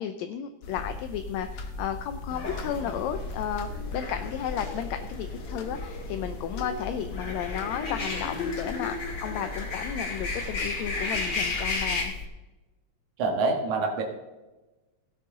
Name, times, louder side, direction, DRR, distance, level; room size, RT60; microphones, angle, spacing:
voice 1, 0.0-12.1, left 9 dB, 75° left, 9 dB, 1.8 m, -33 dB
sound 1, 0.6-12.3, left 3 dB, 55° left, 1.5 m, -39 dB
sound 2, 2.3-12.0, left 3 dB, 40° left, 2.1 m, -34 dB
voice 2, 13.2-14.0, right 3 dB, 75° right, 1 dB, 2.8 m, -26 dB
17.0 x 8.4 x 3.8 m, 1.1 s
omnidirectional pair, 3.4 m